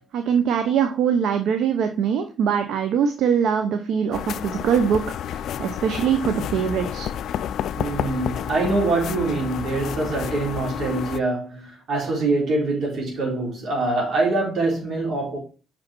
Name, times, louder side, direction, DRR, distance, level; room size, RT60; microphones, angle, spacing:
voice 1, 0.0-7.1, right 7 dB, 80° right, 0.7 m, -22 dB
sound 1, 4.1-11.2, left 9 dB, 70° left, 0.3 m, -30 dB
voice 2, 7.8-15.4, right 2 dB, 60° right, 3.8 m, -24 dB
5.8 x 5.2 x 4.3 m
cardioid pair, 90°, 0 cm